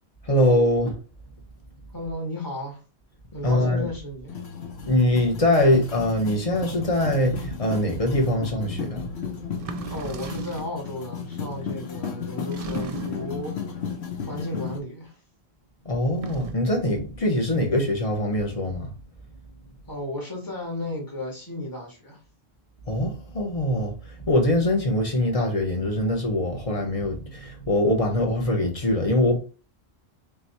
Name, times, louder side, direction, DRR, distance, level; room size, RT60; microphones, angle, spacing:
voice 1, 0.2-1.0 3.4-3.9 4.7-9.1 15.8-18.9 22.9-29.4, left 1 dB, 35° left, 1.0 m, -23 dB
voice 2, 1.9-2.8 3.3-4.4 9.9-13.8 14.3-15.2 19.9-22.2, left 1 dB, 20° left, 1.6 m, -34 dB
sound 1, 4.3-14.8, left 6 dB, 90° left, 1.2 m, -34 dB
sound 2, 9.5-10.8 12.5-13.4 16.1-16.7, right 5 dB, 55° right, 0.4 m, -36 dB
3.5 x 3.1 x 4.1 m
omnidirectional pair, 1.1 m